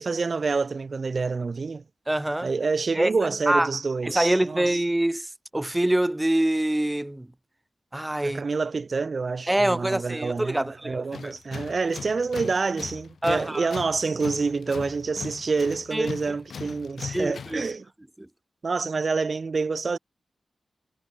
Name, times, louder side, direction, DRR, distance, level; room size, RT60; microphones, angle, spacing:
voice 1, 0.0-1.8 2.4-4.8 8.2-17.9 18.6-20.0, right 4 dB, 50° right, 2.8 m, -27 dB
voice 2, 2.1-2.5 2.9-3.1 3.5-3.7 4.0-7.3 7.9-8.4 9.5-11.3 13.2-13.7 15.9-16.1 17.1-17.7, right 1 dB, 10° right, 1.1 m, -25 dB
Tools, 11.1-17.7, left 6 dB, 80° left, 3.1 m, -39 dB
wide cardioid pair, 95°, 0 cm